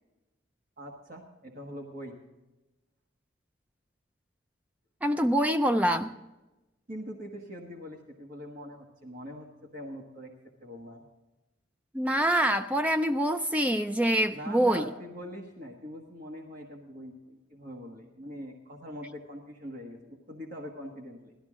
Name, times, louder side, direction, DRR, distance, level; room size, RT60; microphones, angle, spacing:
voice 1, 0.8-2.2 6.9-11.0 14.3-21.3, equal, 45° right, 0 dB, 1.4 m, -43 dB
voice 2, 5.0-6.2 11.9-14.9, right 1 dB, 5° right, 8 dB, 0.3 m, -25 dB
16.5 x 12.5 x 3.7 m, 1.0 s
head